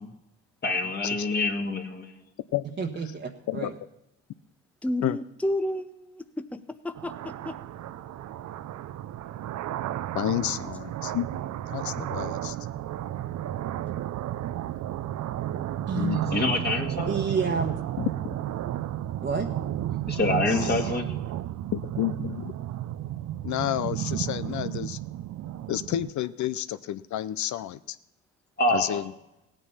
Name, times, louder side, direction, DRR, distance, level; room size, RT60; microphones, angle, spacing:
voice 1, 0.6-2.1 16.3-17.1 20.1-21.2 28.6-29.0, left 2 dB, 35° left, 2 dB, 1.9 m, -26 dB
voice 2, 2.8-3.7 15.9-16.4 17.1-17.7 19.2-19.5, right 5 dB, 40° right, 1 dB, 1.2 m, -29 dB
voice 3, 4.8-7.5, left 1 dB, 5° left, 9 dB, 0.7 m, -31 dB
sound 1, 7.0-26.1, right 12 dB, 65° right, 0.6 m, -33 dB
voice 4, 10.1-11.3 11.7-12.6 16.0-16.2 18.0-18.4 20.5-20.8 21.7-22.5 23.4-25.0 25.7-28.0 28.7-29.1, left 12 dB, 70° left, 14 dB, 0.6 m, -30 dB
16.5 x 9.1 x 5.5 m, 0.90 s
cardioid pair, 90°, 30 cm